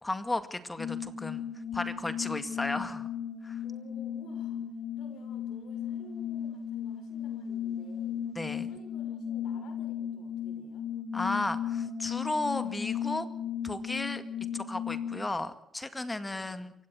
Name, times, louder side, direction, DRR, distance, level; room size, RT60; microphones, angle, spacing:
voice 1, 0.0-1.5 1.7-3.1 3.4-3.6 8.4-8.7 11.1-13.3 13.6-14.2 14.5-16.7, left 2 dB, 15° left, 11 dB, 2.0 m, -34 dB
sound 1, 0.8-15.3, left 8 dB, 50° left, 1.5 m, -36 dB
voice 2, 3.6-8.2 8.6-10.9 16.2-16.7, left 5 dB, 90° left, 6 dB, 6.0 m, -55 dB
28.0 x 16.5 x 6.1 m, 0.76 s
cardioid pair, 90°, 0 cm